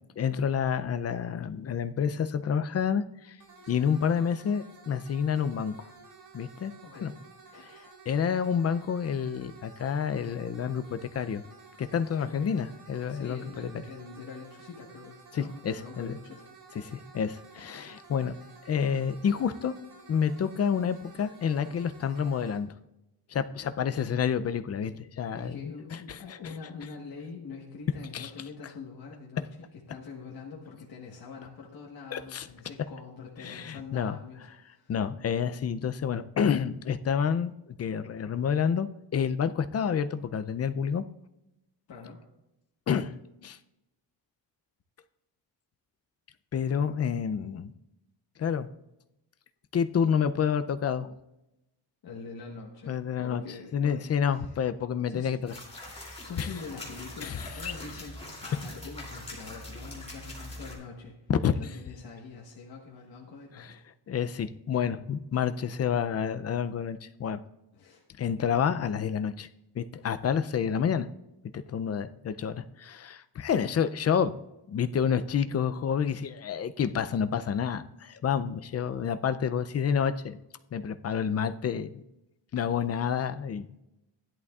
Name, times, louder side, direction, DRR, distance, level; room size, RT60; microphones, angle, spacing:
voice 1, 0.2-3.4 3.7-5.7 6.3-6.7 7.0-7.1 7.5-7.8 8.1-11.4 11.8-13.7 15.3-16.2 16.8-18.3 18.7-19.7 20.1-22.7 23.3-26.4 28.1-28.3 32.1-32.5 33.4-34.1 34.9-37.5 37.8-41.0 42.9-43.2 43.4-43.6 46.5-47.7 48.4-48.7 49.7-51.2 52.9-53.4 53.7-55.5 56.4-56.5 57.2-57.7 61.3-61.5 63.6-63.7 64.1-67.4 68.2-69.5 69.8-71.1 71.5-74.4 74.7-80.4 80.7-82.0 82.5-83.7, left 7 dB, 35° left, 11 dB, 0.4 m, -29 dB
sound 1, 3.4-22.6, right 4 dB, 60° right, 3.5 m, -53 dB
voice 2, 3.6-3.9 6.8-7.1 12.2-12.5 13.1-16.5 16.9-17.0 25.3-34.9 41.9-42.2 52.0-54.6 55.1-55.3 56.2-61.1 61.5-63.8 67.7-68.0, left 4 dB, 55° left, -2 dB, 1.4 m, -44 dB
sound 2, 55.5-60.7, left 1 dB, 15° left, 2.7 m, -42 dB
15.5 x 11.0 x 2.4 m, 0.93 s
wide cardioid pair, 155°, 43 cm